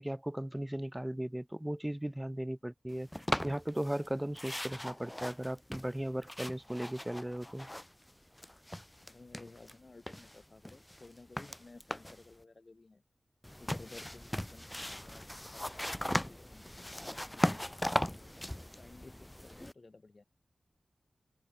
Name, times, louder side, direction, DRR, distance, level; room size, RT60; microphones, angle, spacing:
voice 1, 0.0-3.1 3.4-7.7, right 1 dB, 10° right, 0.7 m, -37 dB
sound 1, 3.1-4.1 4.3-8.1 8.4-9.7 10.1-12.3 13.4-19.7, left 1 dB, 10° left, 1.5 m, -38 dB
voice 2, 9.1-13.0 13.6-17.5 18.0-18.4 18.8-20.2, left 3 dB, 40° left, 4.3 m, -56 dB
wide cardioid pair, 90°, 0 cm